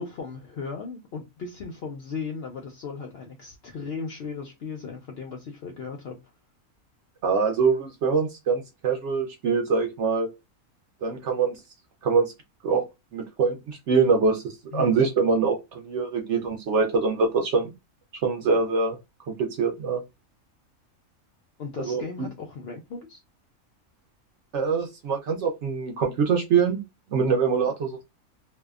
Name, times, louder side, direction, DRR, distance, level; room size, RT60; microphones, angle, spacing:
voice 1, 0.0-6.2 14.7-14.9 21.6-23.2, left 5 dB, 65° left, 0.6 m, -36 dB
voice 2, 7.2-10.3 11.0-11.6 12.0-12.3 12.6-12.8 13.1-17.7 18.2-19.0 19.3-20.0 21.8-22.0 24.5-26.8 27.1-28.0, right 5 dB, 65° right, 0.8 m, -24 dB
2.6 x 2.1 x 2.3 m
omnidirectional pair, 1.5 m